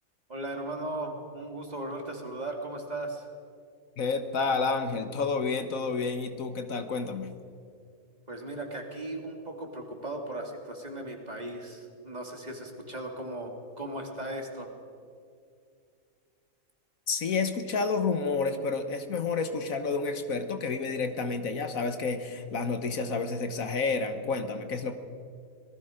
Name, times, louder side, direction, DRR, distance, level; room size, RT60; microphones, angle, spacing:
voice 1, 0.3-3.2 8.3-14.7, right 1 dB, 30° right, 2 dB, 2.6 m, -37 dB
voice 2, 4.0-7.3 17.1-24.9, left 4 dB, 75° left, 8 dB, 1.6 m, -30 dB
26.0 x 19.5 x 5.1 m, 2.3 s
omnidirectional pair, 1.5 m